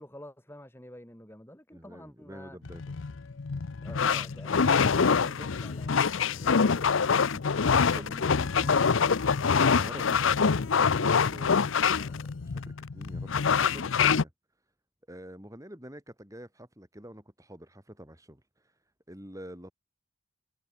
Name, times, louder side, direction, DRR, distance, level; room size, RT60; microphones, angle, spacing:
voice 1, 0.0-2.6 3.8-6.9 7.9-9.2, left 1 dB, 10° left, 4.0 m, -47 dB
voice 2, 1.7-2.9 7.3-8.1 9.6-14.3 15.1-18.4 19.1-19.7, equal, 15° right, 6.0 m, -47 dB
sound 1, 2.6-14.2, left 6 dB, 70° left, 0.6 m, -25 dB
head